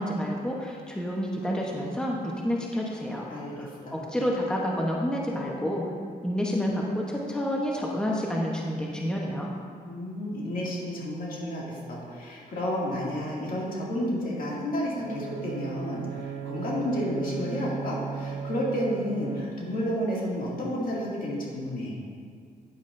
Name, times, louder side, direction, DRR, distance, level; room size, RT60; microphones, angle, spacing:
voice 1, 0.0-5.9 6.2-9.5, equal, 5° left, -2 dB, 0.9 m, -29 dB
voice 2, 3.3-4.3 9.9-21.9, equal, 60° left, -5 dB, 2.3 m, -31 dB
Bowed string instrument, 15.0-19.8, right 7 dB, 45° right, 0.6 m, -37 dB
9.7 x 9.1 x 2.6 m, 2.1 s
cardioid pair, 90°, 16 cm